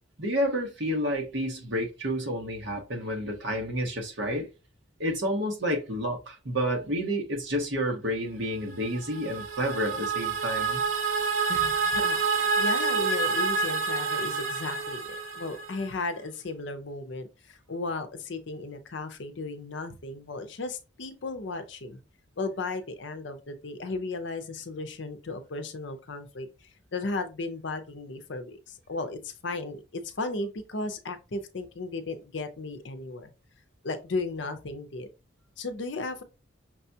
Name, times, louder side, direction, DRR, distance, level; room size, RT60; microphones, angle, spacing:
voice 1, 0.2-4.5 5.0-10.8, equal, 60° right, 1.1 m, -30 dB
sound 1, 8.8-15.9, right 4 dB, 75° right, 0.6 m, -28 dB
voice 2, 11.5-15.0 15.3-22.0 22.4-33.3 33.8-35.1 35.6-36.2, left 3 dB, 65° left, 0.6 m, -35 dB
5.9 x 2.3 x 2.7 m
head